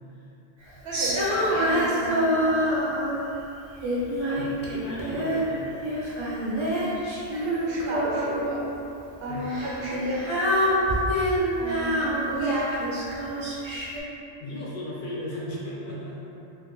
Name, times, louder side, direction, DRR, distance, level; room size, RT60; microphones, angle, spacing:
voice 1, 0.8-2.3 7.3-8.6 9.2-10.8 11.6-12.8, right 1 dB, 65° right, -5 dB, 0.8 m, -32 dB
Female singing, 0.9-3.3 3.8-5.5 5.8-8.7 9.4-14.0, equal, 45° right, 0.3 m, -26 dB
voice 2, 3.8-6.0 9.3-9.5 14.4-16.2, left 1 dB, 60° left, -5 dB, 0.6 m, -37 dB
2.6 x 2.4 x 3.7 m, 2.9 s
omnidirectional pair, 1.1 m